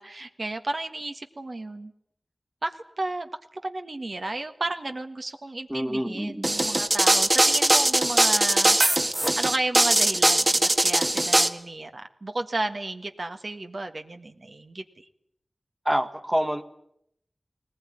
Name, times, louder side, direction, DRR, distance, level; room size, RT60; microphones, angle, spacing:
voice 1, 0.0-1.9 2.6-8.8 9.4-15.1, right 2 dB, 60° right, 6 dB, 1.6 m, -33 dB
voice 2, 5.7-6.5 15.8-16.6, equal, 10° right, 8 dB, 1.6 m, -26 dB
sound 1, 6.4-11.5, right 1 dB, 35° right, 1.7 m, -20 dB
20.0 x 19.5 x 9.9 m, 0.73 s
wide cardioid pair, 65°, 0 cm